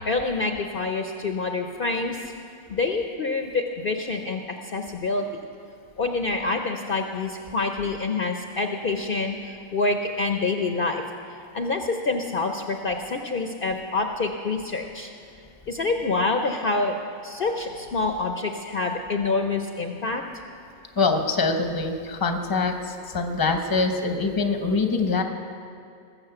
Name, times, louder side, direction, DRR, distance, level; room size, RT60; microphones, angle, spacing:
voice 1, 0.0-2.2 2.7-4.4 4.7-5.2 6.0-11.0 11.5-15.1 15.7-17.0 17.2-20.2, left 3 dB, 50° left, 4 dB, 0.8 m, -26 dB
voice 2, 20.9-25.2, left 4 dB, 20° left, 5 dB, 0.8 m, -24 dB
19.5 x 7.7 x 6.8 m, 2.5 s
omnidirectional pair, 1.4 m